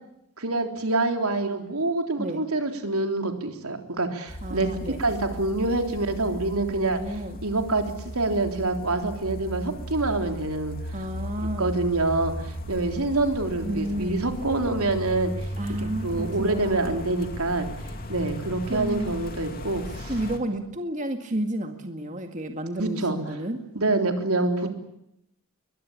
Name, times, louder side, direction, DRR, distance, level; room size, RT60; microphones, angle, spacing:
voice 1, 0.4-4.7 5.0-7.0 7.4-10.8 11.6-15.3 15.8-17.7 18.1-20.1 22.8-23.2 23.8-24.7, right 2 dB, 85° right, 5 dB, 3.6 m, -26 dB
sound 1, 4.3-20.4, equal, 40° left, 2.9 m, -36 dB
voice 2, 4.4-5.0 6.7-7.4 10.9-11.7 13.6-14.1 15.6-17.0 18.7-19.1 20.0-23.6 24.4-24.7, right 1 dB, 35° right, 5 dB, 2.1 m, -31 dB
22.5 x 22.0 x 8.7 m, 0.79 s
head